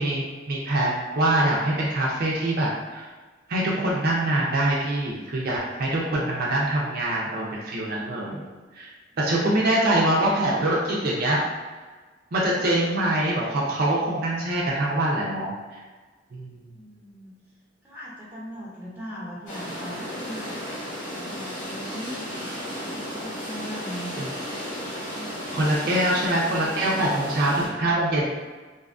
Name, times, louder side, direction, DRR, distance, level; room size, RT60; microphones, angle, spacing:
voice 1, 0.0-3.1 3.5-8.4 8.8-8.9 9.2-11.4 12.3-15.5 16.3-16.7 24.2-24.3 25.5-28.3, right 1 dB, 50° right, -4 dB, 0.4 m, -24 dB
voice 2, 9.1-9.9 12.5-12.6 16.7-17.3 17.8-20.5 21.0-24.1 25.1-25.8, equal, 10° right, -7 dB, 0.6 m, -40 dB
sound 1, 19.5-27.7, equal, 65° left, 1.0 m, -34 dB
2.6 x 2.3 x 2.4 m, 1.3 s
head